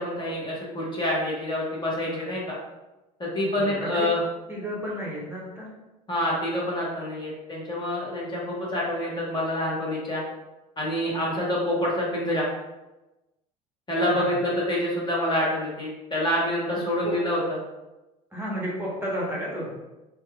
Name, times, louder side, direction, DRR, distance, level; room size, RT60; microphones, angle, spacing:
voice 1, 0.0-2.6 3.2-4.2 6.1-10.2 10.8-12.5 13.9-17.6, left 1 dB, 20° left, -5 dB, 0.9 m, -27 dB
voice 2, 3.4-4.1 4.5-5.7 14.0-14.4 17.0-17.2 18.3-19.7, equal, 10° right, -5 dB, 0.9 m, -32 dB
2.9 x 2.3 x 2.3 m, 1.0 s
hypercardioid pair, 70°, 20 cm